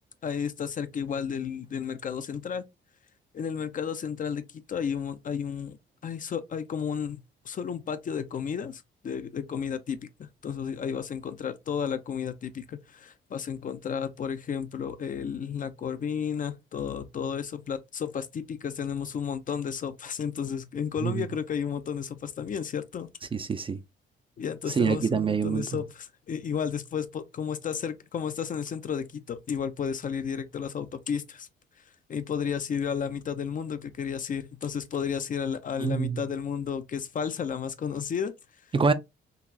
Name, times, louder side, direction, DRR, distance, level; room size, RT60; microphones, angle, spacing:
voice 1, 0.2-2.6 3.3-5.8 6.0-23.1 24.4-31.5 32.1-38.3, left 7 dB, 45° left, 0.5 m, -32 dB
voice 2, 23.3-23.8 24.7-25.7 35.8-36.2 38.7-38.9, right 5 dB, 25° right, 0.4 m, -25 dB
3.9 x 2.4 x 2.7 m
cardioid pair, 90°, 20 cm